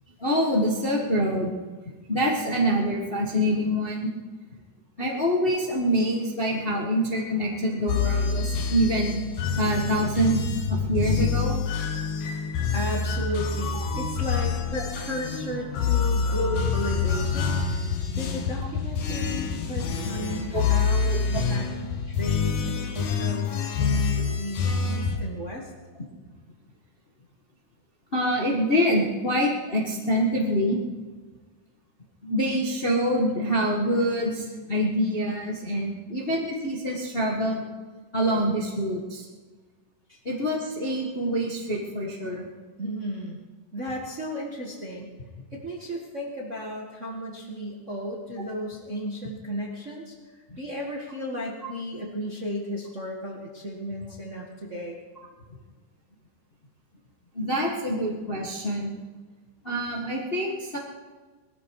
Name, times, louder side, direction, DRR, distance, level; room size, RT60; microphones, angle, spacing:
voice 1, 0.2-1.6 2.1-4.1 5.0-9.2 9.6-11.6 13.7-13.8 16.4-16.5 20.5-20.6 28.1-30.8 32.2-37.6 38.1-39.2 40.2-42.4 50.5-50.6 57.3-58.9 59.6-60.8, equal, 30° left, -2 dB, 1.1 m, -25 dB
sound 1, 7.9-25.2, left 5 dB, 70° left, 2.8 m, -27 dB
voice 2, 12.7-21.6 22.1-25.7 40.1-40.2 42.8-43.4 43.7-45.1 45.5-50.1 50.6-55.0, equal, 35° right, -2 dB, 1.3 m, -34 dB
20.0 x 13.5 x 4.8 m, 1.4 s
omnidirectional pair, 3.8 m